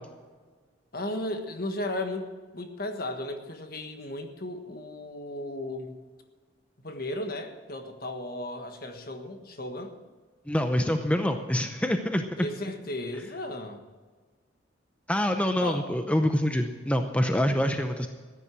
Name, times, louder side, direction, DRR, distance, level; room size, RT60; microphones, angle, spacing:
voice 1, 0.9-6.0 6.8-10.0 12.4-13.8 15.6-15.8, left 1 dB, 50° left, 6 dB, 1.5 m, -35 dB
voice 2, 10.5-12.5 15.1-18.1, equal, 5° left, 6 dB, 0.6 m, -26 dB
14.5 x 10.0 x 6.2 m, 1.4 s
head